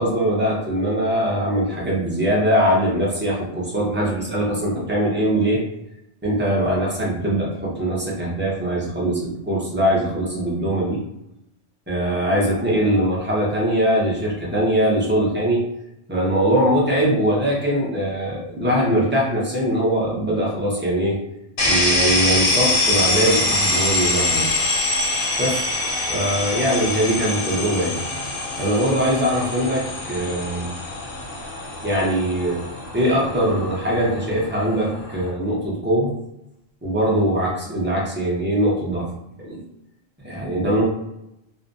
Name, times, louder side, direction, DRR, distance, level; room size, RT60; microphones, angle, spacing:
voice 1, 0.0-5.6 6.2-11.0 11.9-15.6 16.1-21.2 21.7-24.5 25.4-25.6 26.1-28.0 28.6-30.7 31.8-32.6 32.9-36.1 36.8-39.1 39.4-39.6 40.2-40.8, right 1 dB, 15° right, -5 dB, 0.4 m, -21 dB
sound 1, 21.6-35.3, left 2 dB, 55° left, 0.8 m, -24 dB
2.5 x 2.1 x 2.6 m, 0.84 s
omnidirectional pair, 1.3 m